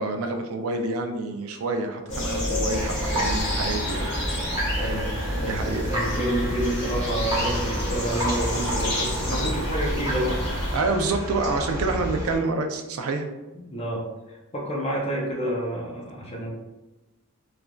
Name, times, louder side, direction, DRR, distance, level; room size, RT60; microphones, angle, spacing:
voice 1, 0.0-4.1 5.4-5.9 9.3-9.6 10.7-13.3, right 3 dB, 85° right, 5 dB, 0.4 m, -28 dB
sound 1, 2.1-10.8, left 1 dB, 55° left, 1.2 m, -28 dB
sound 2, 2.7-12.4, equal, 15° right, 0.6 m, -32 dB
voice 2, 4.8-5.1 5.4-10.4 13.6-16.5, right 1 dB, 30° left, -2 dB, 0.5 m, -29 dB
3.1 x 2.5 x 2.2 m, 1.1 s
head